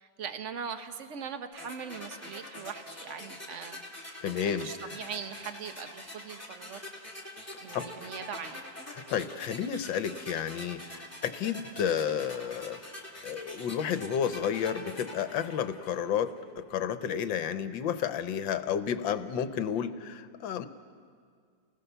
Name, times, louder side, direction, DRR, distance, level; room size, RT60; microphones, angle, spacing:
voice 1, 0.0-6.8 7.6-8.6, right 7 dB, 45° right, 8 dB, 1.3 m, -41 dB
sound 1, 1.6-16.5, left 1 dB, 5° left, 2.5 m, -45 dB
voice 2, 4.2-5.0 7.7-7.9 9.1-12.8 13.2-20.7, left 8 dB, 75° left, 11 dB, 1.6 m, -31 dB
30.0 x 19.5 x 6.9 m, 2.1 s
omnidirectional pair, 2.1 m